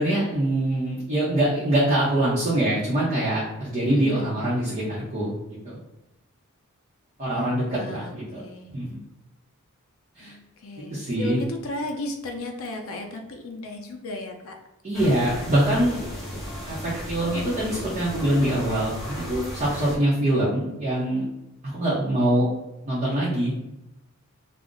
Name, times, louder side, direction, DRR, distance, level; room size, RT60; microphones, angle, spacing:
voice 1, 0.0-5.3 5.6-5.8 7.2-8.4 8.7-9.0 10.2-10.3 10.9-11.4 14.8-16.0 16.7-21.2 21.6-22.5 22.8-23.5, right 1 dB, 35° right, -10 dB, 0.7 m, -24 dB
voice 2, 3.9-4.4 7.4-8.7 10.2-14.5, left 2 dB, 65° left, 3 dB, 0.5 m, -35 dB
sound 1, 14.9-20.0, equal, ahead, 0.7 m, -35 dB
2.4 x 2.1 x 3.7 m, 0.92 s
head